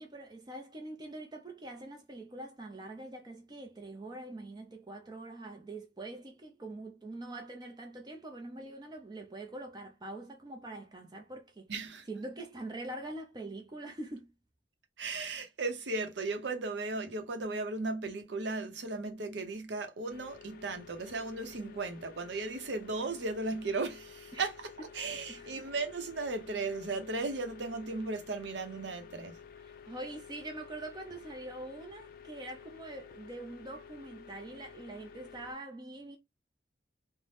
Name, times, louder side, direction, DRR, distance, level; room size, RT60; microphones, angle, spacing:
voice 1, 0.0-11.7 12.1-14.3 24.3-24.5 25.3-25.7 29.6-36.2, right 2 dB, 25° right, 0.5 m, -44 dB
voice 2, 11.7-12.1 15.0-29.4, right 3 dB, 75° right, 0.7 m, -36 dB
sound 1, 20.1-35.5, left 7 dB, 55° left, 0.3 m, -52 dB
2.7 x 2.1 x 3.2 m
head